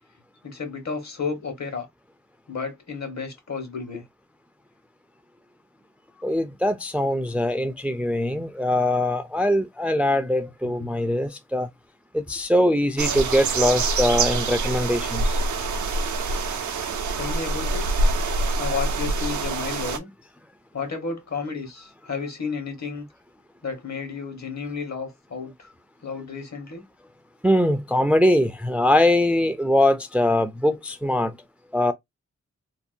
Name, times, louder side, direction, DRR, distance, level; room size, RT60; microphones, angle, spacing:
voice 1, 0.4-1.9 2.5-4.0 17.2-17.8 18.6-20.1 20.7-23.1 23.6-25.5 26.0-26.8, left 5 dB, 65° left, 1.2 m, -32 dB
voice 2, 6.2-11.7 12.1-15.4 27.4-31.4 31.7-31.9, left 1 dB, 5° right, 0.4 m, -22 dB
sound 1, 13.0-20.0, right 3 dB, 80° right, 0.5 m, -25 dB
2.7 x 2.1 x 2.4 m
cardioid pair, 50°, 29 cm